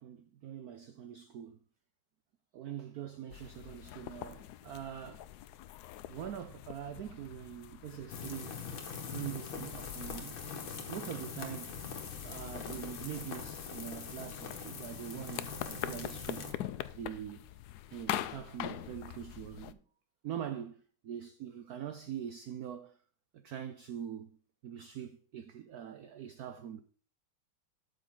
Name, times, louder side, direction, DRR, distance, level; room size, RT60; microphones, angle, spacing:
voice 1, 0.0-1.6 2.5-5.3 6.1-8.6 9.1-10.4 10.9-11.8 12.2-16.5 16.9-17.4 17.9-19.8 20.2-23.0 23.3-24.3 24.6-26.8, right 9 dB, 70° right, 0.9 m, -43 dB
sound 1, 3.3-19.7, left 12 dB, 85° left, 0.8 m, -44 dB
sound 2, 8.1-16.5, left 5 dB, 70° left, 2.3 m, -43 dB
12.5 x 6.8 x 3.8 m
omnidirectional pair, 2.3 m